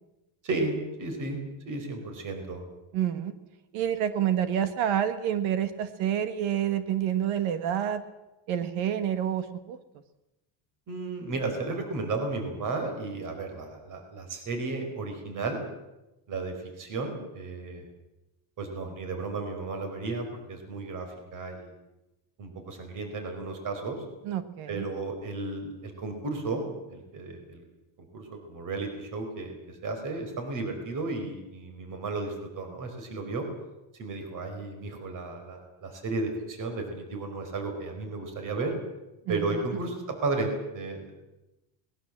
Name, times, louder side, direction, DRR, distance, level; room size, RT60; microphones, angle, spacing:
voice 1, 0.4-2.6 10.9-15.6 16.3-17.8 18.6-21.7 22.4-24.0 24.7-27.6 28.1-33.5 34.0-38.7 39.3-41.1, right 3 dB, 40° right, 5 dB, 4.6 m, -34 dB
voice 2, 2.9-3.3 3.7-8.0 8.5-9.8 24.3-24.9 39.3-39.4, right 10 dB, 80° right, 11 dB, 1.8 m, -28 dB
22.0 x 20.5 x 7.6 m, 0.97 s
cardioid pair, 170°, 47 cm